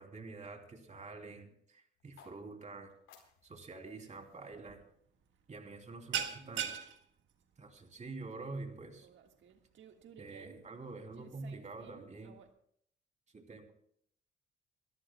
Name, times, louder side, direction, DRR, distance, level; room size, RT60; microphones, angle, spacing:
voice 1, 0.0-2.9 3.4-4.8 5.5-6.8 7.6-9.1 10.2-12.3 13.3-13.7, right 3 dB, 35° right, 3 dB, 3.1 m, -47 dB
sound 1, 1.9-6.1, left 6 dB, 85° left, 4.3 m, -65 dB
sound 2, 4.5-4.8 5.1-5.3 5.6-12.5, right 9 dB, 70° right, 1.7 m, -43 dB
28.5 x 13.5 x 2.3 m, 0.66 s
cardioid pair, 90°, 20 cm